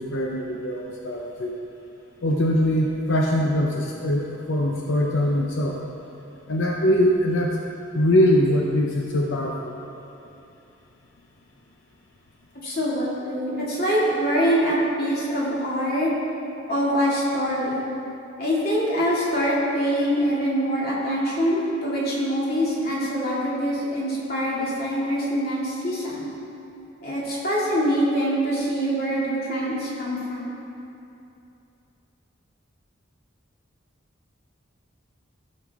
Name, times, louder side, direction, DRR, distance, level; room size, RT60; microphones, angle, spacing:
voice 1, 0.0-1.6 2.2-5.8 6.5-7.6 7.9-9.7, left 1 dB, 70° left, -1 dB, 0.7 m, -22 dB
voice 2, 12.6-16.1 16.7-17.8 18.4-26.3 27.0-30.5, equal, 45° left, -6 dB, 2.4 m, -24 dB
15.0 x 6.6 x 3.6 m, 2.8 s
head